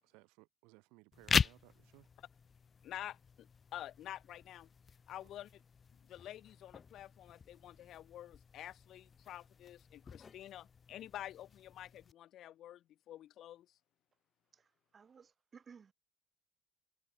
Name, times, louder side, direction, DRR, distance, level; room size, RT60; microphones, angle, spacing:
voice 1, 0.0-2.1 5.2-5.3, right 27 dB, 85° right, 4.1 m, -62 dB
sound 1, 1.1-12.1, left 6 dB, 30° left, 0.3 m, -41 dB
voice 2, 2.8-4.7 5.1-5.5 5.9-13.7, left 12 dB, 60° left, 1.0 m, -49 dB
voice 3, 14.9-15.9, right 6 dB, 35° right, 1.4 m, -58 dB
cardioid pair, 105°, 0 cm